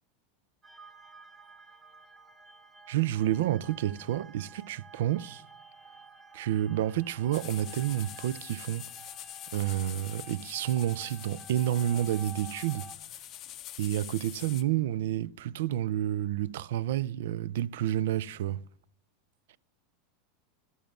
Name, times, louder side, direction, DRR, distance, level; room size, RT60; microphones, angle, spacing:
sound 1, 0.6-13.0, right 3 dB, 10° right, 1.4 m, -51 dB
voice 1, 2.9-5.4 6.3-8.9 9.5-12.9 13.8-18.6, right 12 dB, 75° right, 0.4 m, -29 dB
sound 2, 7.3-14.6, left 12 dB, 30° left, 0.5 m, -45 dB
12.5 x 7.1 x 7.6 m
supercardioid pair, 170°, 0 cm